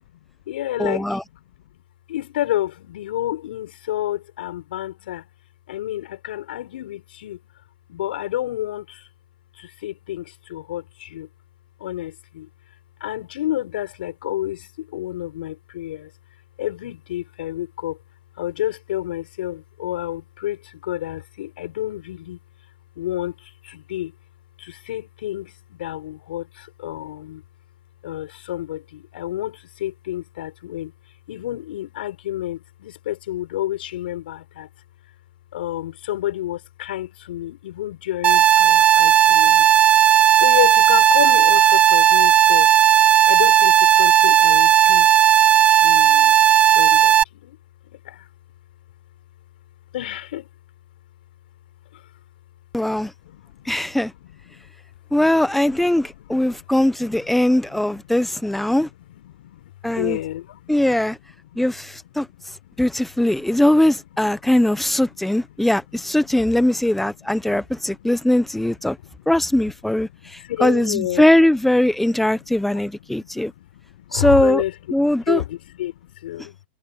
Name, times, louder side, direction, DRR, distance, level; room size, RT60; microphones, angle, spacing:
voice 1, 0.3-1.8 2.1-5.3 5.7-7.4 7.9-9.1 9.5-11.3 11.8-12.5 13.0-16.1 16.6-18.0 18.4-22.4 22.9-24.1 24.6-27.4 28.0-30.9 31.3-34.7 35.5-39.7 40.4-42.7 43.3-45.1 45.7-47.6 47.8-48.3 49.9-50.5 51.9-52.0 53.2-53.7 54.2-54.7 55.6-60.8 61.2-61.7 62.0-63.8 64.1-65.3 65.6-69.4 69.8-71.2 72.1-76.6, left 13 dB, 75° left, 6.9 m, -31 dB
voice 2, 0.8-1.2 52.7-53.1 53.6-54.1 55.1-58.9 59.8-60.2 60.7-61.2 61.6-62.3 62.8-69.0 69.3-73.5 74.1-74.6 74.9-75.4, left 1 dB, 5° left, 1.1 m, -20 dB
sound 1, 38.2-47.2, right 10 dB, 25° right, 1.9 m, -14 dB
hypercardioid pair, 130°, 5 cm